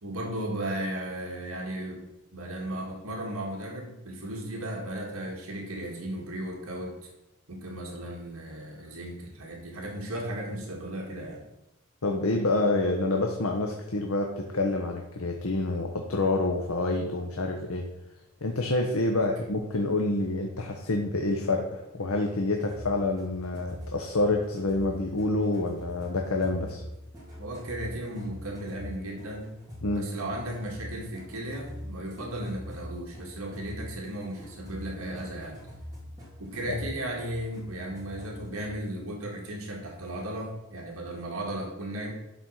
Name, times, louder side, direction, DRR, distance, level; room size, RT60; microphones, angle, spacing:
voice 1, 0.0-2.1 2.3-7.0 7.5-11.4 19.1-19.3 27.4-29.5 29.9-35.6 36.4-42.1, right 1 dB, 75° right, 0 dB, 2.1 m, -35 dB
voice 2, 12.0-17.9 18.4-26.8 29.8-30.1 36.7-36.8, left 2 dB, 75° left, 2 dB, 1.0 m, -27 dB
sound 1, 22.7-38.9, equal, 15° right, 2.6 m, -44 dB
11.5 x 4.3 x 6.4 m, 0.93 s
head